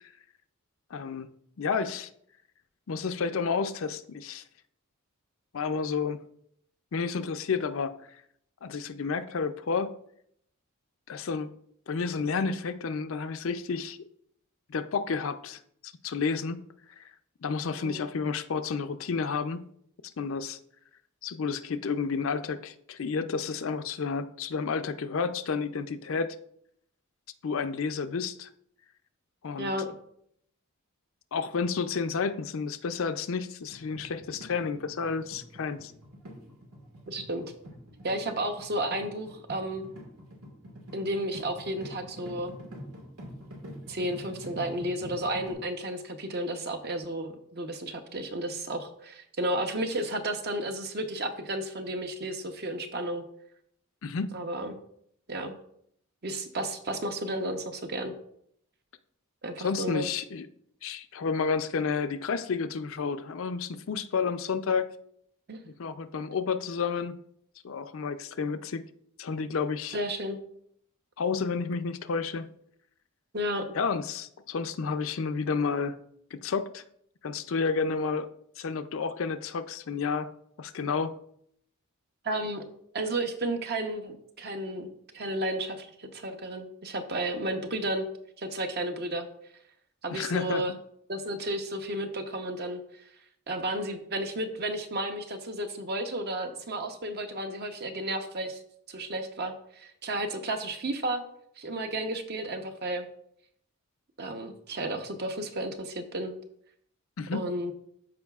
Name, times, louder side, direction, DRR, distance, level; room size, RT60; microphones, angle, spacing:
voice 1, 0.9-1.3 1.6-2.1 2.9-4.4 5.5-6.2 6.9-8.2 8.6-10.0 11.1-11.5 11.9-14.0 14.7-16.6 17.0-17.1 17.4-19.7 20.2-20.6 21.2-26.4 27.4-28.5 29.4-29.8 31.3-35.9 54.0-54.4 59.6-60.5 60.8-64.9 65.8-67.2 67.6-68.9 69.2-70.0 71.2-72.5 73.7-75.9 76.3-76.8 77.2-78.3 78.6-80.3 80.6-81.1 90.1-90.6 107.2-107.5, left 5 dB, 65° left, 0.5 m, -31 dB
sound 1, 33.7-45.5, equal, 85° right, 1.8 m, -46 dB
voice 2, 37.1-37.4 38.0-39.9 40.9-42.5 43.9-53.2 54.3-54.8 55.3-55.6 56.2-58.1 59.4-60.1 65.5-65.6 69.9-70.4 73.3-73.6 82.2-82.6 82.9-88.1 88.4-89.3 90.0-90.8 91.1-93.0 93.5-98.6 98.9-101.2 101.6-103.1 104.2-106.3 107.3-107.7, right 1 dB, 50° right, 0.8 m, -32 dB
13.5 x 4.7 x 2.4 m
head